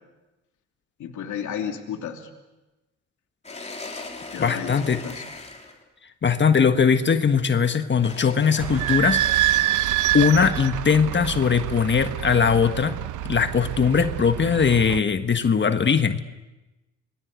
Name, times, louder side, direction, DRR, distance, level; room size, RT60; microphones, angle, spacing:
voice 1, 1.0-2.3 4.3-5.2, left 8 dB, 75° left, 4 dB, 2.9 m, -33 dB
sound 1, 3.4-5.8 8.0-9.0, left 3 dB, 20° left, 3.9 m, -38 dB
voice 2, 4.4-5.0 6.2-9.6 10.1-16.2, left 6 dB, 40° left, 9 dB, 1.5 m, -20 dB
Idling / Squeak, 8.6-15.0, right 13 dB, 80° right, 0.9 m, -26 dB
27.0 x 21.5 x 8.3 m, 1.0 s
cardioid pair, 90°, 30 cm